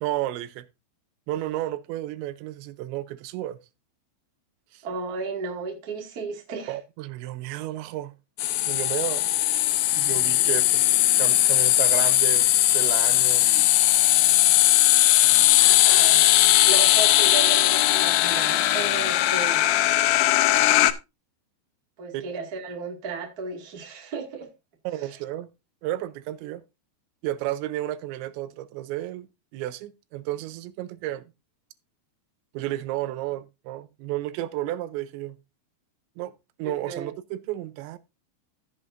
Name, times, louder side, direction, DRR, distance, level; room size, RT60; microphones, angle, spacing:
voice 1, 0.0-0.7 1.3-3.6 4.7-4.8 6.7-8.1 8.7-9.2 10.0-10.9 11.2-13.7 15.2-15.7 22.1-22.3 24.9-25.5 25.8-26.6 27.2-29.3 29.5-31.3 32.5-35.4 36.2-36.3 36.6-38.0, right 14 dB, 85° right, 3.0 m, -32 dB
voice 2, 4.8-6.8 15.6-16.3 16.6-19.7 22.0-24.5 24.9-25.2 36.6-37.1, right 4 dB, 40° right, 1.4 m, -34 dB
sound 1, 8.4-20.9, left 15 dB, 90° left, 2.1 m, -19 dB
14.5 x 7.6 x 2.6 m
omnidirectional pair, 5.1 m